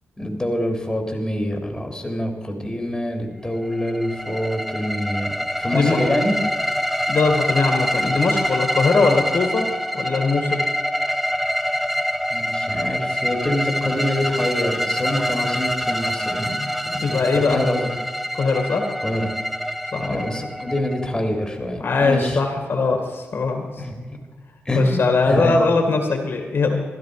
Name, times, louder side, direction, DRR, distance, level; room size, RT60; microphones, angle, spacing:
voice 1, 0.2-5.3 5.6-6.3 12.3-17.2 17.5-17.9 19.0-19.3 19.9-22.4 23.8-23.9 24.6-25.0 25.3-25.6, left 1 dB, 15° left, 3 dB, 3.3 m, -25 dB
sound 1, 3.6-21.5, equal, ahead, 0.7 m, -26 dB
voice 2, 7.1-9.6 9.9-10.7 17.0-17.6 18.4-18.8 19.9-20.3 21.8-23.7 24.7-26.8, left 3 dB, 55° left, 4 dB, 2.3 m, -20 dB
15.5 x 12.5 x 5.0 m, 1.4 s
cardioid pair, 70°, 5 cm